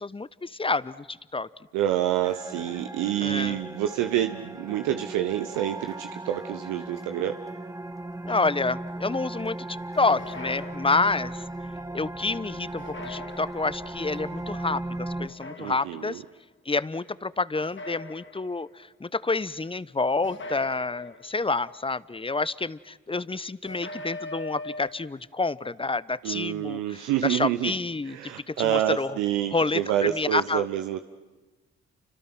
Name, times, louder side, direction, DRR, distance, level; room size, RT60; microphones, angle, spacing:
voice 1, 0.0-1.5 3.2-3.6 8.2-11.4 11.9-16.2 16.6-29.2 29.5-30.7, left 3 dB, 15° left, 18 dB, 0.9 m, -28 dB
voice 2, 1.7-7.4 15.6-16.2 26.2-27.7 28.1-31.0, right 12 dB, 80° right, 7 dB, 1.0 m, -27 dB
sound 1, 2.2-15.3, right 2 dB, 10° right, 1.6 m, -37 dB
sound 2, 10.2-11.4 12.8-13.9 15.2-16.2 17.6-18.8 20.2-21.6 23.7-24.9, left 2 dB, 40° left, 2.0 m, -41 dB
30.0 x 26.0 x 6.2 m, 1.2 s
hypercardioid pair, 45°, 31 cm